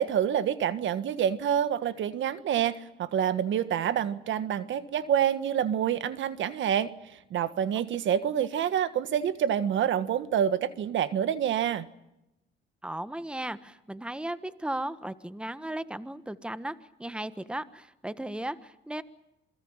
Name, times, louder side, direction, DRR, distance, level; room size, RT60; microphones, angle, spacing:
voice 1, 0.0-6.9 7.3-11.9, right 9 dB, 70° right, 13 dB, 1.6 m, -27 dB
voice 2, 12.8-19.0, right 1 dB, 5° right, 13 dB, 1.4 m, -36 dB
28.0 x 21.0 x 7.4 m, 0.87 s
cardioid pair, 90°, 20 cm